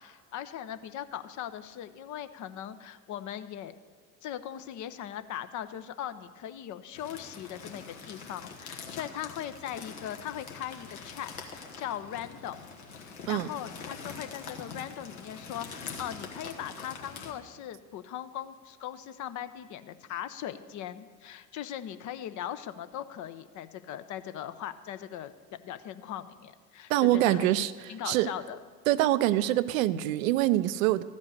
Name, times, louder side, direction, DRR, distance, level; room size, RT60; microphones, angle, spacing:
voice 1, 0.0-3.7 4.2-12.6 13.0-27.5 27.9-28.6, left 10 dB, 45° left, 12 dB, 0.7 m, -39 dB
sound 1, 6.9-17.3, left 5 dB, 80° left, 1.4 m, -44 dB
voice 2, 26.9-27.7 28.1-28.3 28.9-31.0, right 15 dB, 70° right, 15 dB, 0.5 m, -24 dB
13.5 x 5.3 x 8.0 m, 1.5 s
hypercardioid pair, 65°, 43 cm